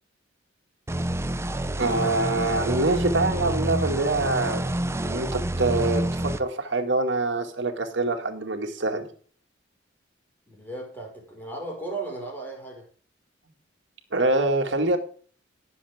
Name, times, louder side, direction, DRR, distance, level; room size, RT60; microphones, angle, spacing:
sound 1, 0.9-6.4, right 1 dB, 15° right, 0.6 m, -28 dB
voice 1, 1.8-4.6 5.1-9.1 14.1-15.0, right 2 dB, 65° right, 4 dB, 2.1 m, -25 dB
voice 2, 10.5-12.9, right 2 dB, 10° left, 0 dB, 5.0 m, -36 dB
18.0 x 7.3 x 3.6 m, 0.43 s
head